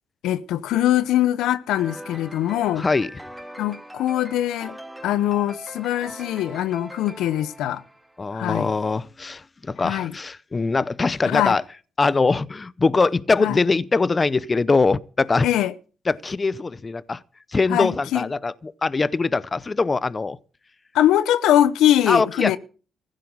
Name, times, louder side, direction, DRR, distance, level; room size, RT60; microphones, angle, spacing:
voice 1, 0.2-2.8 3.6-4.8 5.0-7.8 8.3-8.7 9.8-10.1 11.2-11.6 13.4-13.6 15.4-15.7 17.7-18.2 20.9-22.6, left 12 dB, 85° left, 0.8 m, -22 dB
sound 1, 1.8-8.4, right 1 dB, 5° right, 1.4 m, -41 dB
voice 2, 2.8-3.1 8.2-11.6 12.0-15.5 16.1-17.2 17.5-20.4 22.1-22.6, left 3 dB, 30° left, 0.6 m, -22 dB
15.0 x 7.6 x 8.8 m
cardioid pair, 90°, 0 cm